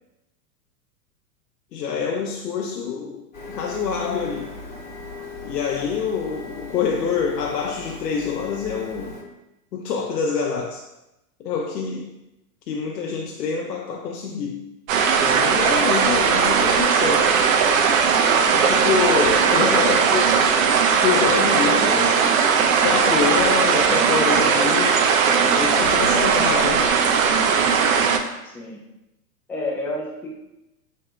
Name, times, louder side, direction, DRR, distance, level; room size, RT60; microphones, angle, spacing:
voice 1, 1.7-4.6 5.4-9.2 9.7-10.8 11.4-12.2 12.7-14.7 15.1-17.3 18.4-20.1 21.0-22.4 22.8-25.2 25.5-26.9, left 6 dB, 80° left, 1 dB, 0.6 m, -26 dB
Printer, 3.3-9.2, left 2 dB, 20° left, 1.3 m, -38 dB
sound 1, 14.9-28.2, right 6 dB, 55° right, 0.6 m, -18 dB
voice 2, 19.4-20.3 28.4-28.8 29.5-30.3, left 2 dB, 5° left, -3 dB, 0.5 m, -29 dB
7.2 x 2.8 x 2.2 m, 0.94 s
hypercardioid pair, 105°, 48 cm